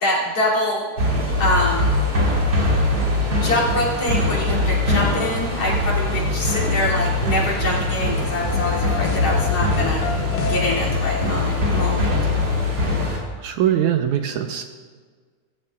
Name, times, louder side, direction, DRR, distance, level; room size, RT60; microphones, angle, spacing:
voice 1, 0.0-0.9 1.4-2.0 3.4-10.1 10.4-12.1, left 1 dB, 45° left, -3 dB, 3.6 m, -24 dB
sound 1, 1.0-13.2, left 1 dB, 35° right, 3.0 m, -22 dB
sound 2, 8.5-11.8, left 11 dB, 85° left, 2.3 m, -28 dB
voice 2, 13.4-14.6, right 10 dB, 80° right, 6 dB, 1.9 m, -21 dB
20.0 x 15.5 x 2.4 m, 1.6 s
omnidirectional pair, 3.8 m